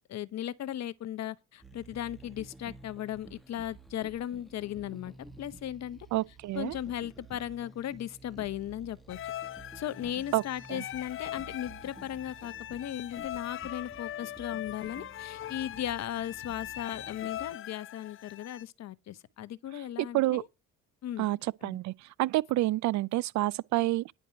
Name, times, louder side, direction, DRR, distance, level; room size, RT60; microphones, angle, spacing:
voice 1, 0.1-6.0 6.5-9.2 9.7-20.5 21.0-21.3 21.6-21.8, left 11 dB, 60° left, 1.1 m, -37 dB
sound 1, 1.6-17.5, right 3 dB, ahead, 1.6 m, -52 dB
voice 2, 6.1-6.7 10.3-10.4 10.7-10.8 20.0-20.4 21.2-21.4 21.6-24.1, right 17 dB, 65° right, 0.5 m, -28 dB
sound 2, 9.1-18.6, left 12 dB, 45° left, 0.5 m, -41 dB
10.5 x 5.3 x 7.6 m
supercardioid pair, 85°, 31 cm